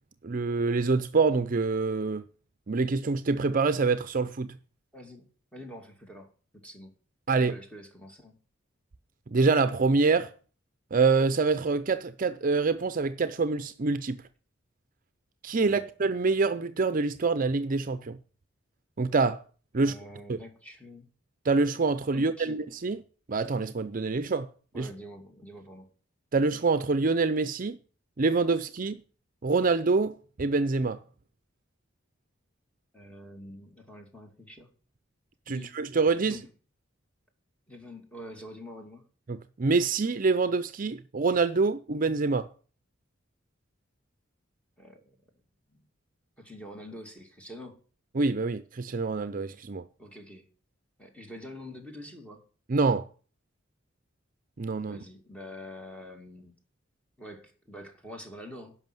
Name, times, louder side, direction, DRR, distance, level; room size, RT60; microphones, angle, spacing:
voice 1, 0.2-2.2 2.7-4.6 7.3-7.5 9.3-10.3 10.9-14.2 15.4-18.2 19.0-19.4 19.7-19.9 20.3-20.4 21.5-23.0 23.3-24.5 24.7-24.9 26.3-27.8 28.2-29.0 29.4-31.0 35.5-36.4 39.3-42.5 48.2-49.8 52.7-53.1 54.6-55.0, right 4 dB, 45° right, 0.5 m, -26 dB
voice 2, 4.9-6.9 7.3-8.4 15.6-15.8 19.8-21.1 22.1-22.6 24.7-25.9 32.9-34.7 35.5-35.8 36.3-36.5 37.7-39.0 44.8-45.2 45.7-45.8 46.4-47.8 50.0-50.5 51.0-52.5 54.8-56.5 57.2-58.8, left 1 dB, 5° left, 2.5 m, -46 dB
11.0 x 6.1 x 9.1 m
head